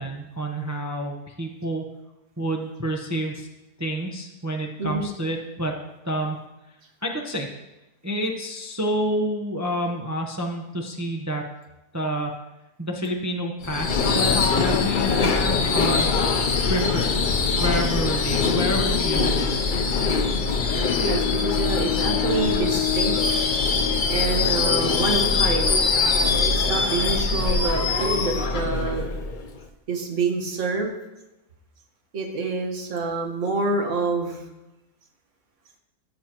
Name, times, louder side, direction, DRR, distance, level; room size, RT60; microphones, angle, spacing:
voice 1, 0.0-1.8 2.4-3.5 3.8-5.7 6.0-6.4 7.0-7.5 8.0-11.5 11.9-12.4 12.8-16.4 16.7-17.2 17.6-19.6, equal, 15° right, 1 dB, 0.6 m, -28 dB
Subway metro underground / Screech, 13.6-29.6, left 4 dB, 55° left, 0.5 m, -23 dB
Bowed string instrument, 20.5-24.8, left 16 dB, 85° left, 1.2 m, -30 dB
voice 2, 21.0-23.2 24.1-25.8 26.4-29.1 29.9-30.9 32.1-34.4, right 3 dB, 50° right, 2 dB, 1.7 m, -27 dB
15.0 x 7.5 x 3.0 m, 0.97 s
omnidirectional pair, 1.6 m